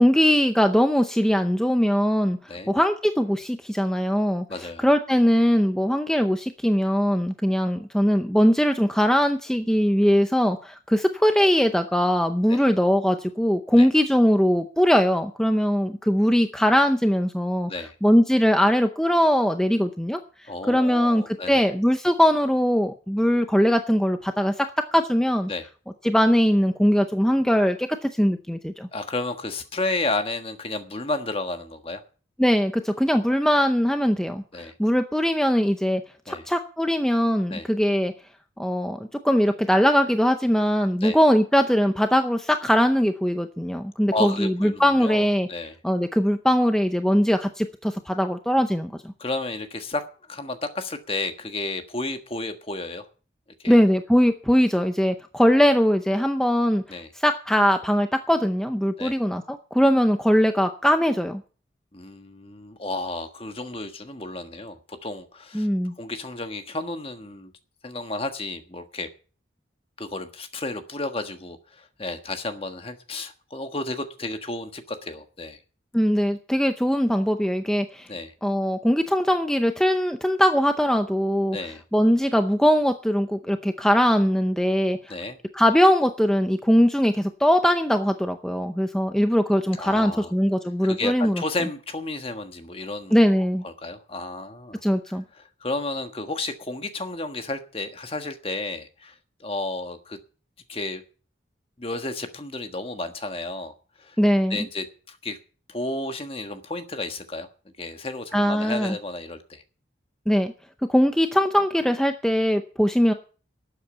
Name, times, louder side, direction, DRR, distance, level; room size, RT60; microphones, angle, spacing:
voice 1, 0.0-17.7 18.0-24.7 24.9-25.5 26.0-28.9 32.4-38.1 38.6-45.5 45.8-48.9 53.7-61.4 65.5-65.9 75.9-78.1 78.4-81.6 81.9-85.1 85.5-91.4 93.1-93.6 94.8-95.2 104.2-104.7 108.3-109.0 110.3-110.5 110.9-113.1, equal, 5° left, 7 dB, 0.6 m, -21 dB
voice 2, 4.5-4.9 12.5-12.6 13.7-13.9 17.7-17.9 20.5-21.7 25.5-25.7 28.9-32.0 34.5-34.7 36.3-36.4 37.5-37.7 41.0-41.2 44.1-45.7 49.2-53.1 53.6-53.8 56.9-57.1 59.0-59.2 61.9-65.7 66.0-67.5 67.8-69.1 70.0-75.6 78.1-78.3 81.5-81.8 85.1-85.4 89.8-90.3 90.8-93.2 93.6-94.8 95.1-100.2 100.7-101.0 101.8-103.7 104.0-104.1 104.5-105.4 105.7-107.5 107.8-109.6, left 2 dB, 30° left, 7 dB, 1.4 m, -32 dB
12.5 x 8.3 x 8.1 m, 0.39 s
head